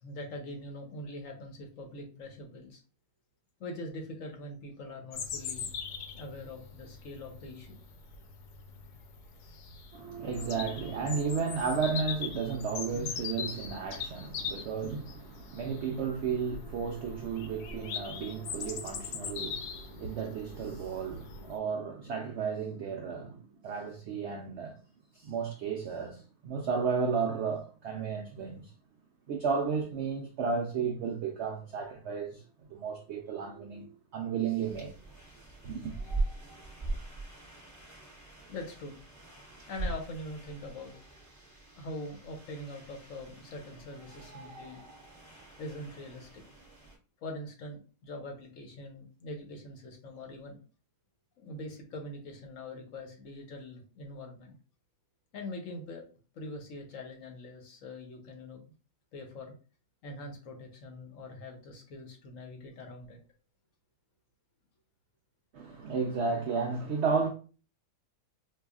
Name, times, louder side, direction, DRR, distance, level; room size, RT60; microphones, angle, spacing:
voice 1, 0.0-2.8 3.6-5.7 6.1-7.8 38.5-38.9 39.7-40.9 41.7-44.8 45.6-46.4 47.2-50.6 51.4-54.5 55.3-56.0 56.3-58.6 59.1-59.5 60.0-63.2, left 1 dB, 65° left, 0.9 m, -43 dB
Bird vocalization bird call bird song, 5.1-21.6, left 6 dB, 80° left, 1.2 m, -41 dB
voice 2, 9.9-24.8 25.1-28.7 29.3-32.4 32.7-34.9 35.6-35.9 65.5-67.3, right 5 dB, 80° right, 0.6 m, -33 dB
sound 1, 34.6-47.0, right 2 dB, 15° right, 1.0 m, -41 dB
4.6 x 2.4 x 2.3 m
omnidirectional pair, 1.7 m